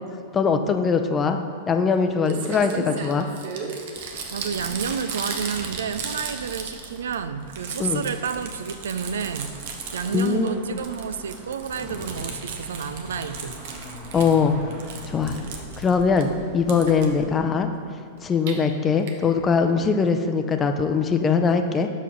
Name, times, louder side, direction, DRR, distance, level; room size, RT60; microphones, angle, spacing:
voice 1, 0.3-1.4 1.7-3.3 7.8-8.0 10.1-10.5 14.1-14.6 15.1-15.4 15.8-17.7 18.2-21.9, left 5 dB, 25° left, 7 dB, 0.5 m, -21 dB
Crumpling crinkling, 1.9-2.0 2.2-7.1 7.4-10.5 10.8-14.4 14.7-16.2 16.7-17.1 18.2-18.5 19.1-19.2 19.4-19.5 19.7-19.8, right 5 dB, 60° right, 0.9 m, -35 dB
sound 1, 3.9-17.4, right 1 dB, 25° right, 1.2 m, -42 dB
voice 2, 4.3-9.5 9.9-13.6 17.2-17.3 19.8-20.0, right 7 dB, 75° right, 11 dB, 0.3 m, -30 dB
6.0 x 4.8 x 5.3 m, 2.3 s
hypercardioid pair, 100°, 0 cm